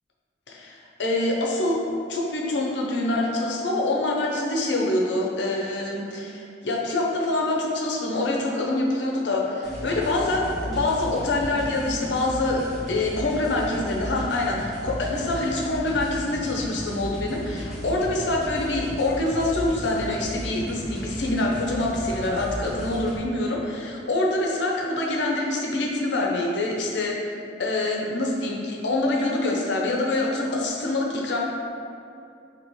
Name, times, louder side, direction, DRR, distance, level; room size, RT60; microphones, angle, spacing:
voice 1, 0.5-1.8 2.1-12.6 12.9-27.2 27.6-31.4, left 2 dB, 75° left, -2 dB, 0.6 m, -25 dB
sound 1, 9.6-23.2, equal, ahead, 1.0 m, -35 dB
4.1 x 2.9 x 3.1 m, 2.5 s
head